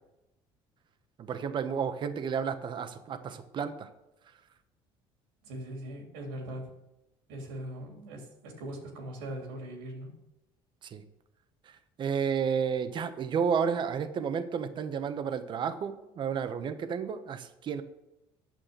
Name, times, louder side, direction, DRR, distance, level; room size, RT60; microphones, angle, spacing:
voice 1, 1.2-3.9 10.9-11.0 12.0-17.8, right 6 dB, 45° right, 10 dB, 1.1 m, -31 dB
voice 2, 5.4-6.7 7.3-10.1, right 1 dB, 90° right, 2 dB, 3.1 m, -40 dB
9.2 x 7.2 x 6.6 m, 0.94 s
supercardioid pair, 90°, 11 cm